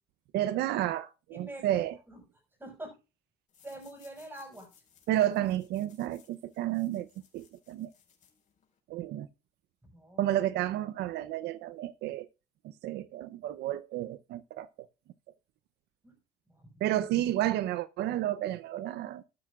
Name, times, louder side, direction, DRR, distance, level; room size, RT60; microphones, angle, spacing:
voice 1, 0.3-2.0 5.1-7.1 7.3-7.9 8.9-9.3 10.2-12.3 12.6-14.7 16.8-19.2, right 13 dB, 80° right, 0.7 m, -31 dB
voice 2, 1.3-2.2 2.6-3.0 3.6-4.7 9.8-10.2 16.0-16.1 16.5-16.7, right 1 dB, 10° right, 5.9 m, -45 dB
sound 1, 3.5-8.8, left 7 dB, 45° left, 4.8 m, -64 dB
12.5 x 12.0 x 2.4 m
cardioid pair, 110°, 17 cm